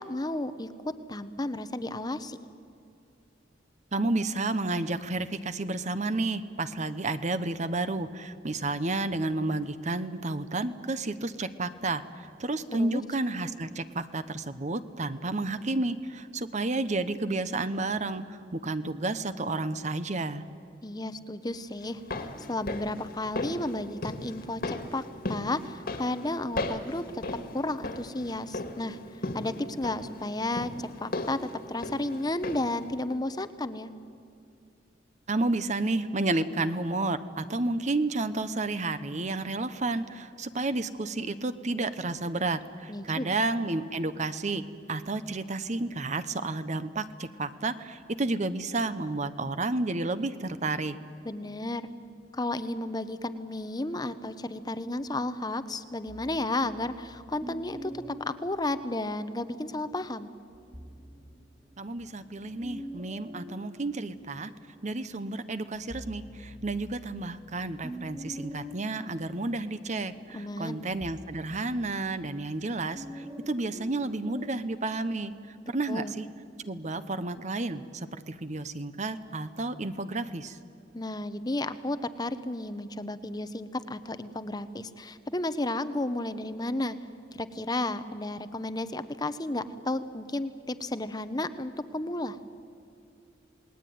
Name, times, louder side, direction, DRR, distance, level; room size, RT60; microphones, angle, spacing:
voice 1, 0.0-2.4 12.8-13.0 20.8-25.0 25.3-27.2 27.5-29.0 29.3-33.9 42.9-43.3 51.2-51.8 52.3-60.3 70.3-70.9 75.9-76.1 80.9-87.0 87.3-92.4, left 2 dB, 20° left, 12 dB, 0.8 m, -33 dB
voice 2, 3.9-20.4 35.3-51.0 61.8-64.5 64.8-76.3 76.6-80.6, right 2 dB, 40° right, 12 dB, 0.9 m, -31 dB
sound 1, 21.8-32.8 33.1-33.2, left 2 dB, 55° left, 2.0 m, -37 dB
sound 2, 56.1-59.6 60.5-65.0 65.4-74.7, equal, 25° right, 2.3 m, -46 dB
28.0 x 19.5 x 9.4 m, 2.4 s
head